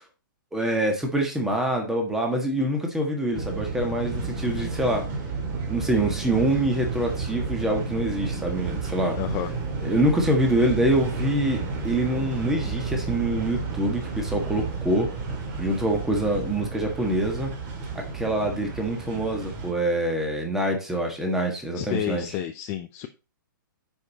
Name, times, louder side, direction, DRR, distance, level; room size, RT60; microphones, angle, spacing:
voice 1, 0.5-5.0 5.7-9.2 9.8-15.1 15.6-17.5 17.9-22.2, right 1 dB, 5° right, 2 dB, 1.5 m, -25 dB
sound 1, 3.3-19.7, right 4 dB, 25° right, 2.2 m, -31 dB
voice 2, 9.2-9.5 21.7-23.1, left 12 dB, 20° left, 7 dB, 0.5 m, -30 dB
9.5 x 5.4 x 4.0 m, 0.31 s
hypercardioid pair, 170°, 11 cm